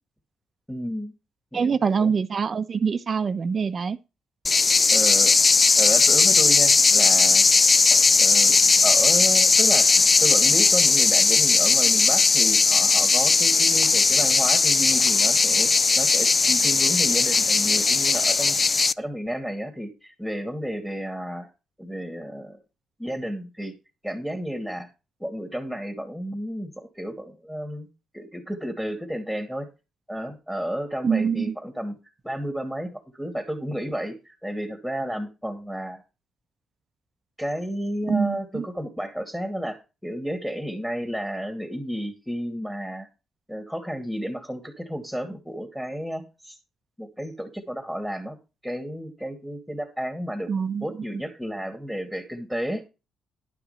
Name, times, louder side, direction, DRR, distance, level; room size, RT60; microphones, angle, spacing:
voice 1, 0.7-1.1 1.5-2.1 4.9-5.3 5.8-7.4 8.2-8.6 8.8-21.5 21.8-22.6 23.0-23.7 24.0-24.9 25.2-29.7 30.1-32.0 32.2-36.0 37.4-43.1 43.5-46.6 47.0-48.4 48.6-52.8, equal, 5° left, 2.5 m, -32 dB
voice 2, 1.5-4.0 31.0-31.5 38.1-38.6 50.5-50.9, right 6 dB, 40° right, 0.9 m, -24 dB
sound 1, 4.5-18.9, left 4 dB, 30° left, 0.5 m, -18 dB
11.5 x 5.8 x 5.7 m
cardioid pair, 90°, 0 cm